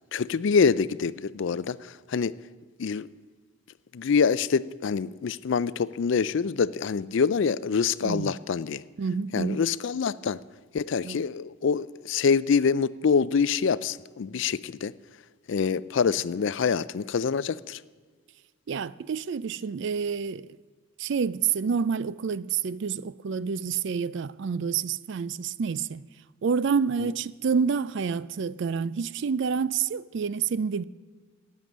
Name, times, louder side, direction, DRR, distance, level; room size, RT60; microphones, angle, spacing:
voice 1, 0.1-2.4 2.8-3.1 3.9-8.8 9.3-10.4 10.7-14.9 15.5-17.8 27.0-27.1, left 5 dB, 60° left, 0.4 m, -25 dB
voice 2, 9.0-9.6 11.0-11.2 18.7-20.5 21.0-26.0 26.4-30.8, right 6 dB, 55° right, 0.4 m, -28 dB
13.5 x 9.4 x 7.3 m
head